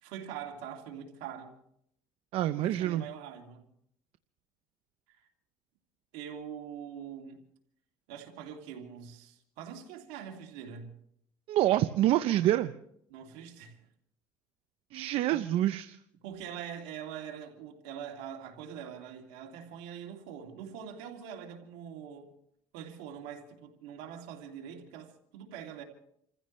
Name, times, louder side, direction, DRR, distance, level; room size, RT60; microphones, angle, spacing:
voice 1, 0.0-1.6 2.6-3.7 6.1-7.4 8.1-10.9 13.1-13.8 15.0-15.4 16.2-22.3 22.7-25.8, right 8 dB, 85° right, 2.7 m, -43 dB
voice 2, 2.3-3.1 11.5-12.7 14.9-16.0, right 13 dB, 70° right, 0.6 m, -27 dB
29.0 x 15.0 x 3.2 m
supercardioid pair, 95°, 10 cm